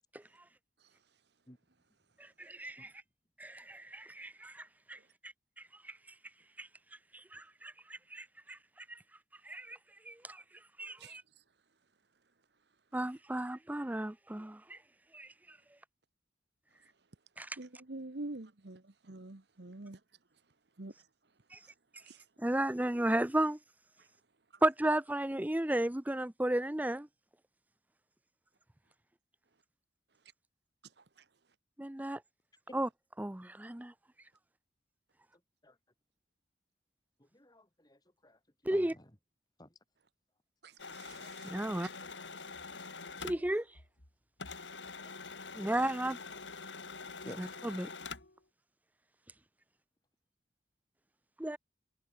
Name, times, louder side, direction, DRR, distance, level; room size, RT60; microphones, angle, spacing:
voice 1, 2.2-2.9 3.4-5.3 5.8-6.0 6.6-6.7 7.1-8.6 8.9-9.0 9.4-9.8 10.1-10.4 10.8-11.2 12.9-14.8 15.1-15.6 17.4-17.6 21.5-21.6 22.4-23.6 24.6-27.1 31.8-32.2 32.7-32.9 33.2-33.9 38.7-38.9 41.4-41.9 43.2-43.7 45.5-46.2 47.4-47.9 51.4-51.6, right 1 dB, 10° right, 0.5 m, -34 dB
voice 2, 17.6-18.8 19.1-20.0 20.8-20.9 40.6-41.5, right 2 dB, 65° right, 1.2 m, -45 dB
voice 3, 37.2-38.4 38.7-39.1 39.6-39.7 41.2-41.3 45.5-45.8 47.2-47.5, left 1 dB, 20° left, 5.9 m, -53 dB
sound 1, 40.8-44.1 44.4-48.4, left 4 dB, 85° left, 5.1 m, -45 dB
head